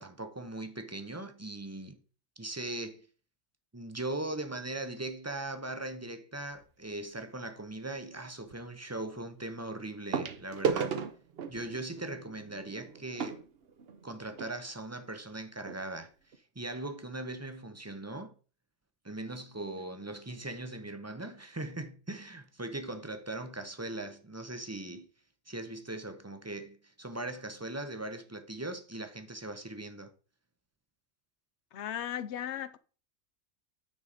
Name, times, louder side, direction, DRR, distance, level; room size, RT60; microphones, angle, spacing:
voice 1, 0.0-2.0 2.4-3.1 3.7-11.0 11.5-13.4 14.0-16.1 16.5-18.3 19.0-25.1 25.5-30.1, right 2 dB, 15° right, 0.6 m, -39 dB
sound 1, 6.5-6.8 8.5-8.6 10.1-14.5 15.3-15.4 15.6-15.8 16.3-16.4, right 5 dB, 55° right, 1.0 m, -36 dB
voice 2, 31.7-32.8, left 10 dB, 65° left, 0.8 m, -36 dB
9.5 x 4.8 x 4.1 m
omnidirectional pair, 1.3 m